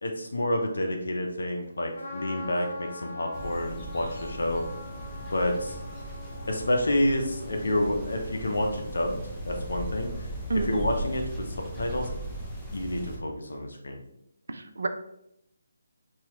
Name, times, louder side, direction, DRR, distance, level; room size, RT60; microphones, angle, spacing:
voice 1, 0.0-4.7 5.3-5.8 6.5-9.2 9.5-10.3 10.5-12.1 12.7-14.0, left 1 dB, 75° left, 2 dB, 0.5 m, -29 dB
Trumpet, 1.9-8.1, left 2 dB, 40° left, 0.8 m, -43 dB
sound 1, 3.3-13.2, right 1 dB, 5° left, 0.6 m, -38 dB
voice 2, 14.5-14.9, right 3 dB, 70° right, 7 dB, 0.4 m, -28 dB
2.9 x 2.3 x 3.0 m, 0.79 s
figure-of-eight pair, 155°, 0 cm